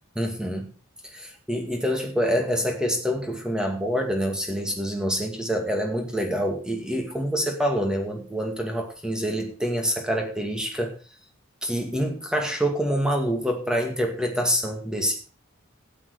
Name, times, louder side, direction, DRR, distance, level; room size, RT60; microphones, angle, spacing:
voice 1, 0.2-0.7 1.1-11.0 11.6-15.3, equal, 5° right, 3 dB, 2.2 m, -26 dB
12.5 x 9.3 x 4.9 m, 0.35 s
head